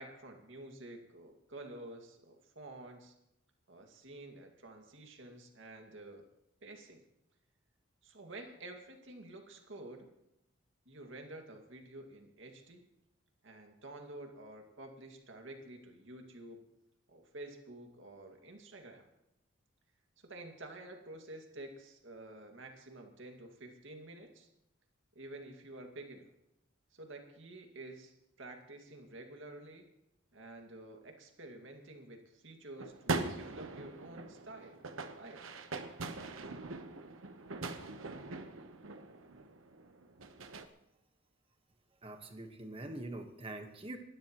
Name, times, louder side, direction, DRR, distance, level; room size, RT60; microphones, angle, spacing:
voice 1, 0.0-3.1 3.7-6.2 6.6-7.0 8.0-10.1 10.9-12.8 13.4-16.6 17.1-19.1 20.2-24.5 25.1-26.3 26.9-29.9 30.3-34.8 35.2-35.4, right 2 dB, 65° right, 3 dB, 2.1 m, -50 dB
sound 1, 32.8-40.7, right 3 dB, 85° right, 1.1 m, -41 dB
voice 2, 42.0-44.0, right 1 dB, 25° right, 5 dB, 1.4 m, -44 dB
29.0 x 12.0 x 3.1 m, 0.86 s
head